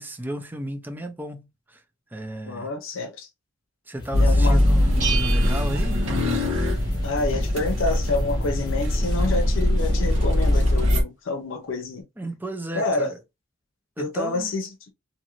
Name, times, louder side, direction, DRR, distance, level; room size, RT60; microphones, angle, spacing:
voice 1, 0.0-1.8 2.1-2.7 3.9-6.5 12.2-13.1 14.0-14.6, right 1 dB, 10° right, 0.4 m, -34 dB
voice 2, 2.4-3.3 4.2-4.6 7.0-12.1 12.7-13.1 14.0-14.9, left 3 dB, 80° left, 0.6 m, -28 dB
sound 1, 4.0-10.9, left 1 dB, 20° left, 0.8 m, -40 dB
sound 2, 4.1-11.0, left 1 dB, 80° right, 1.0 m, -21 dB
Bell, 5.0-6.8, right 7 dB, 40° right, 1.2 m, -32 dB
2.7 x 2.5 x 2.9 m
head